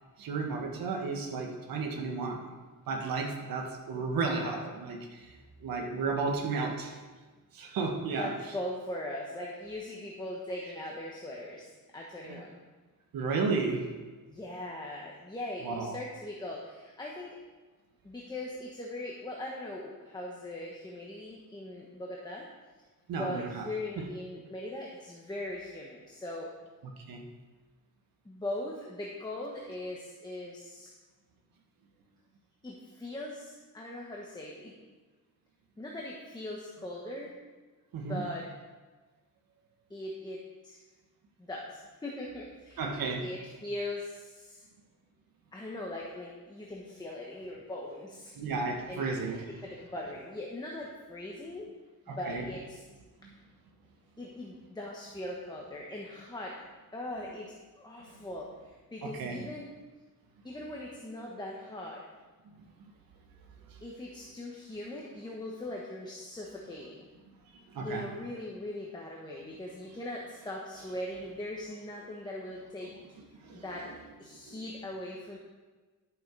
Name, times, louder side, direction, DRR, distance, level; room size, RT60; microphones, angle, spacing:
voice 1, 0.2-2.5 2.9-5.3 5.6-7.0 7.5-8.3 12.3-12.4 13.1-13.9 15.6-16.0 23.1-23.7 24.0-24.1 27.1-27.2 37.9-38.2 42.8-43.3 48.3-49.5 52.1-52.5 59.0-59.4 67.7-68.1 73.4-73.6 74.5-74.6, right 4 dB, 80° right, 2 dB, 1.6 m, -33 dB
voice 2, 3.9-4.7 8.1-12.5 14.3-17.4 18.0-22.4 23.1-26.5 28.2-30.9 32.6-34.7 35.8-37.4 38.0-38.5 39.9-40.8 41.4-42.8 43.2-44.6 45.5-48.4 48.9-49.1 49.6-51.7 52.1-52.8 54.2-56.6 56.9-59.7 60.4-62.0 63.8-67.1 67.8-72.9 73.5-73.9 74.2-75.4, left 1 dB, 10° left, -2 dB, 1.1 m, -40 dB
11.5 x 7.3 x 4.7 m, 1.3 s
cardioid pair, 145°, 34 cm